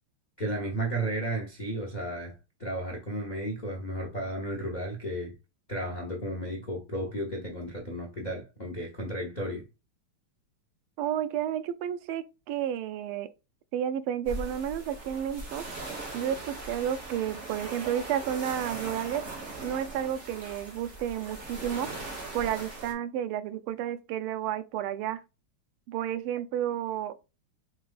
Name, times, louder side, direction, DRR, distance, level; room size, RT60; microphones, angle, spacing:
voice 1, 0.4-5.3 5.7-9.7, right 1 dB, 80° left, 0.4 m, -33 dB
voice 2, 11.0-13.3 13.7-15.6 16.1-19.2 19.6-21.9 22.3-25.2 25.9-27.1, right 10 dB, 85° right, 1.5 m, -31 dB
sound 1, 14.3-22.9, right 2 dB, 35° right, 1.6 m, -40 dB
4.6 x 3.8 x 2.4 m
omnidirectional pair, 2.4 m